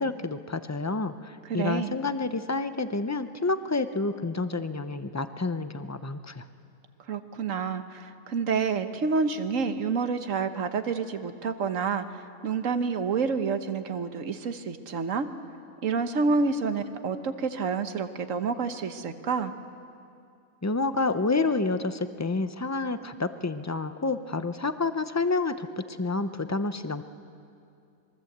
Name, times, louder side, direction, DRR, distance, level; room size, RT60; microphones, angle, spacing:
voice 1, 0.0-6.4 20.6-27.0, left 3 dB, 20° left, 10 dB, 0.4 m, -29 dB
voice 2, 1.5-2.0 7.1-12.0 12.4-15.3 15.8-19.5, right 5 dB, 70° right, 9 dB, 1.4 m, -28 dB
26.0 x 22.0 x 8.0 m, 2.5 s
omnidirectional pair, 1.4 m